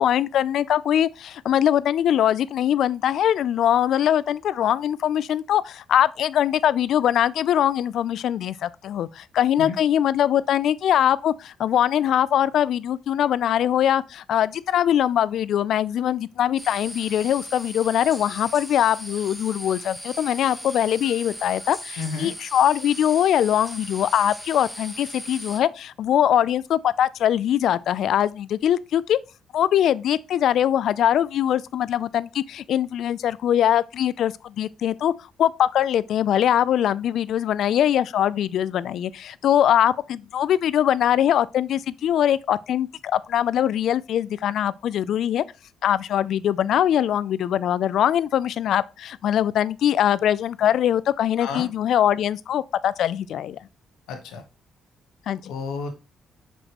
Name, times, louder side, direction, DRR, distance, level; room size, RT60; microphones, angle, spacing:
voice 1, 0.0-29.2 29.5-35.1 35.4-45.4 45.8-53.6 55.3-55.5, left 10 dB, 70° left, 0.4 m, -22 dB
sound 1, 16.6-25.6, equal, 5° right, 1.2 m, -38 dB
voice 2, 22.0-22.3 51.4-51.6 54.1-54.4 55.4-55.9, left 5 dB, 90° left, 1.3 m, -31 dB
6.3 x 4.9 x 3.0 m
cardioid pair, 90°, 0 cm